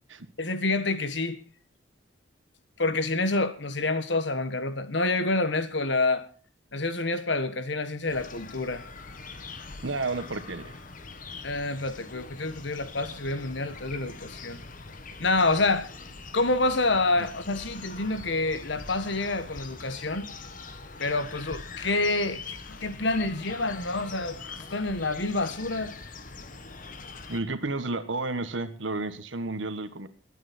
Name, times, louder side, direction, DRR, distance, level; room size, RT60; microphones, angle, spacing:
voice 1, 0.4-1.4 2.8-6.3 6.7-8.8 11.4-14.6 15.2-15.9 16.3-20.3 21.0-25.9, left 2 dB, 65° left, 1.5 m, -28 dB
sound 1, 8.1-27.4, left 3 dB, 45° left, 1.4 m, -43 dB
voice 2, 9.8-10.8 17.2-17.3 27.3-30.1, right 2 dB, 80° right, 1.5 m, -31 dB
22.0 x 9.2 x 4.4 m
head